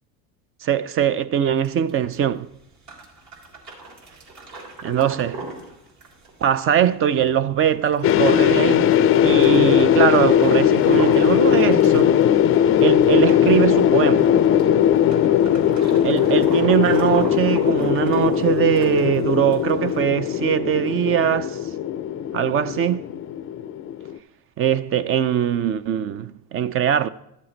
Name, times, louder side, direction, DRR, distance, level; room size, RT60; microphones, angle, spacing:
voice 1, 0.6-2.5 4.8-5.4 6.4-8.9 9.2-12.2 12.8-14.3 16.0-21.6 22.3-23.0 24.6-27.1, right 9 dB, 35° right, 0.4 m, -21 dB
sound 1, 1.6-20.0, right 2 dB, 55° right, 3.6 m, -38 dB
sound 2, 8.0-24.2, left 10 dB, 30° left, 0.4 m, -19 dB
13.0 x 7.4 x 3.9 m
supercardioid pair, 95°, 44 cm